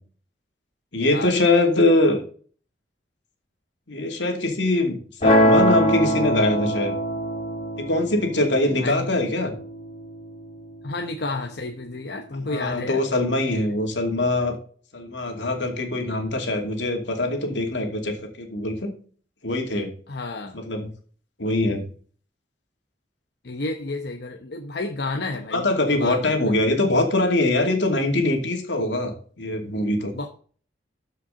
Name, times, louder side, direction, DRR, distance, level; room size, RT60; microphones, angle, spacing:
voice 1, 0.9-2.2 3.9-6.9 7.8-9.5 12.4-14.6 14.9-18.9 19.4-19.9 20.5-20.9 21.4-21.9 25.5-30.1, left 2 dB, 80° left, 3 dB, 2.5 m, -23 dB
sound 1, 5.2-11.2, equal, 40° left, 3.6 m, -23 dB
voice 2, 8.8-9.1 10.8-13.0 20.1-20.6 23.4-26.4 30.1-30.3, left 3 dB, 60° left, 3 dB, 0.9 m, -31 dB
13.0 x 5.7 x 3.8 m, 0.43 s
head